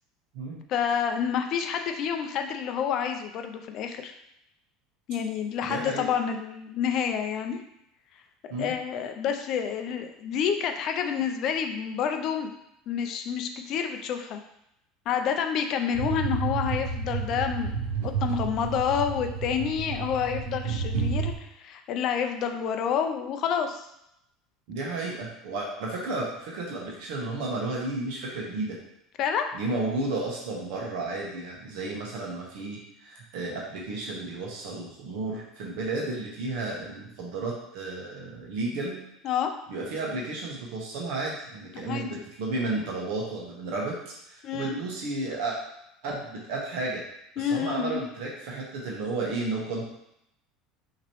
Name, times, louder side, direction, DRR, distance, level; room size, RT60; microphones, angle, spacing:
voice 1, 0.7-4.1 5.1-7.6 8.6-12.5 12.9-14.4 15.1-23.9 29.2-29.5 39.2-39.5 41.7-42.1 44.4-44.8 47.4-48.0, left 7 dB, 35° left, 6 dB, 0.4 m, -28 dB
voice 2, 5.6-6.1 8.5-8.7 24.7-28.8 29.5-39.0 39.7-45.6 46.0-47.0 47.4-49.8, right 2 dB, 60° right, -2 dB, 1.1 m, -32 dB
sound 1, 15.9-21.3, right 5 dB, 90° right, 0.6 m, -30 dB
5.8 x 3.0 x 3.0 m, 0.81 s
cardioid pair, 175°, 0 cm